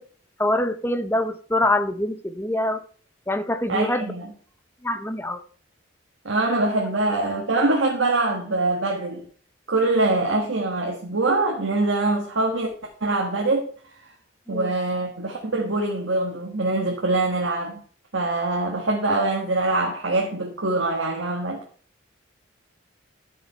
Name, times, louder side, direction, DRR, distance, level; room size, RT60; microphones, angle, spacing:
voice 1, 0.4-2.8 3.3-4.1 4.8-5.4 14.5-14.7, left 1 dB, 10° left, 9 dB, 0.7 m, -24 dB
voice 2, 3.7-4.3 6.2-9.2 9.7-12.7 13.0-13.7 14.5-17.8 18.1-21.6, right 2 dB, 70° right, 1 dB, 1.4 m, -23 dB
12.0 x 5.3 x 4.4 m, 0.43 s
head